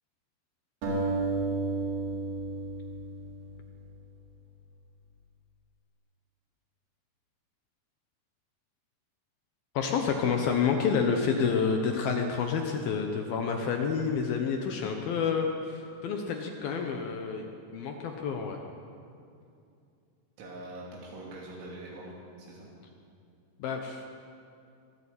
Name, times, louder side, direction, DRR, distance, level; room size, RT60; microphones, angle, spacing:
sound 1, 0.8-4.0, right 3 dB, 55° right, 6.2 m, -32 dB
voice 1, 9.7-17.5 17.7-18.6 23.6-24.0, left 6 dB, 70° left, 3 dB, 2.5 m, -29 dB
voice 2, 20.4-22.7, right 1 dB, 80° right, -4 dB, 5.3 m, -43 dB
23.5 x 13.0 x 8.5 m, 2.5 s
omnidirectional pair, 5.4 m